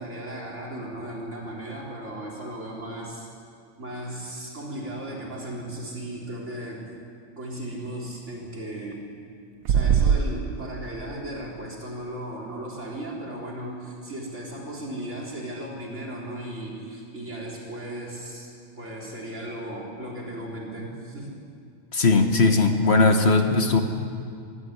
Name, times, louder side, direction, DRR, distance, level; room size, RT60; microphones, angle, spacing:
voice 1, 0.0-3.3 3.8-6.9 7.4-9.1 9.7-21.4, right 1 dB, 60° right, -3 dB, 4.2 m, -36 dB
sound 1, 9.6-10.2, right 7 dB, 85° right, 1.2 m, -19 dB
voice 2, 21.9-23.8, left 3 dB, 55° left, 5 dB, 1.6 m, -19 dB
24.5 x 14.5 x 8.1 m, 2.4 s
omnidirectional pair, 1.4 m